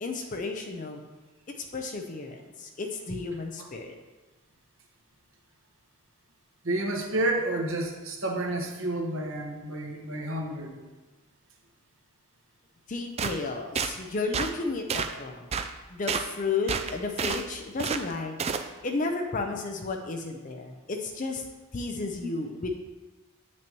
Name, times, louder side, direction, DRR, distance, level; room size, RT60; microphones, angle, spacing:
voice 1, 0.0-1.0 1.6-3.9 12.9-15.6 15.9-18.4 18.8-21.4 21.7-22.7, left 3 dB, 35° left, 3 dB, 0.5 m, -33 dB
voice 2, 6.6-10.7 22.2-22.3, right 1 dB, 60° right, 1 dB, 1.2 m, -30 dB
sound 1, 13.2-13.4 13.8-13.9 14.3-14.5 14.9-15.1 15.5-15.7 16.1-16.3 16.7-17.4 17.8-18.0 18.4-18.7, right 6 dB, 30° right, 0.3 m, -29 dB
8.7 x 6.1 x 3.0 m, 1.2 s
head